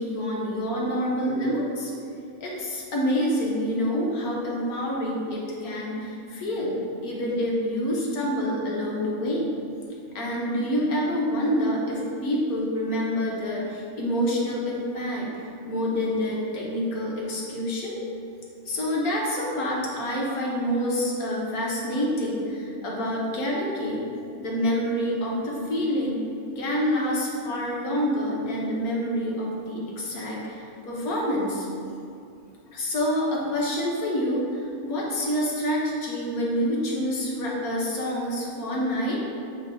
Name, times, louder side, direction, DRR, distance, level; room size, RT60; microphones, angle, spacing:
voice 1, 0.0-1.9 2.4-9.5 10.1-18.0 18.6-24.0 24.4-26.2 26.6-31.7 32.7-39.2, equal, 85° left, -3 dB, 1.6 m, -27 dB
7.7 x 3.3 x 3.8 m, 2.5 s
omnidirectional pair, 1.5 m